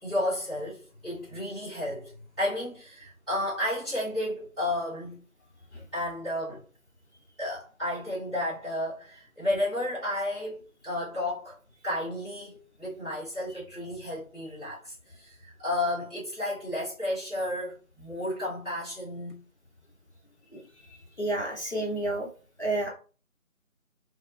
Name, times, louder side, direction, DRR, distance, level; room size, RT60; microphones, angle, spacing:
voice 1, 0.0-5.2 5.9-6.6 7.4-11.6 11.8-19.4, left 1 dB, ahead, 0.9 m, -32 dB
voice 2, 21.2-22.3 22.6-22.9, right 2 dB, 55° left, 0.7 m, -29 dB
2.7 x 2.1 x 2.3 m
figure-of-eight pair, 175°, 42 cm